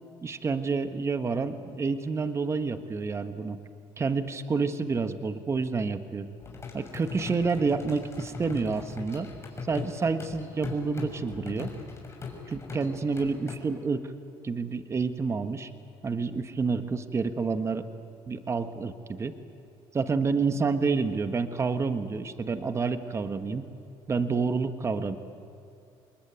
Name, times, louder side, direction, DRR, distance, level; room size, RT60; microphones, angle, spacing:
voice 1, 0.2-3.6 4.0-6.3 6.7-9.3 9.7-11.7 12.5-14.1 14.4-15.7 16.0-17.9 18.3-19.3 19.9-23.7 24.1-25.2, right 4 dB, 30° right, 9 dB, 1.4 m, -29 dB
sound 1, 6.4-13.6, left 4 dB, 25° left, 6.3 m, -40 dB
28.0 x 21.0 x 9.4 m, 2.6 s
cardioid pair, 110°, 10 cm